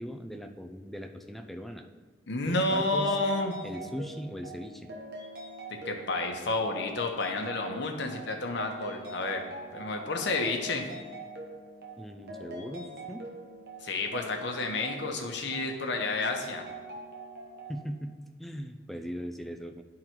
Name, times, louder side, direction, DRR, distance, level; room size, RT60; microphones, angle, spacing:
voice 1, 0.0-1.9 2.4-3.2 3.6-4.9 12.0-13.2 17.7-19.8, equal, ahead, 6 dB, 0.4 m, -39 dB
voice 2, 2.3-3.5 5.8-10.8 13.8-16.6, left 2 dB, 65° left, 3 dB, 1.0 m, -30 dB
sound 1, 3.0-17.8, right 1 dB, 55° right, 1.2 m, -43 dB
10.5 x 3.8 x 4.5 m, 1.3 s
head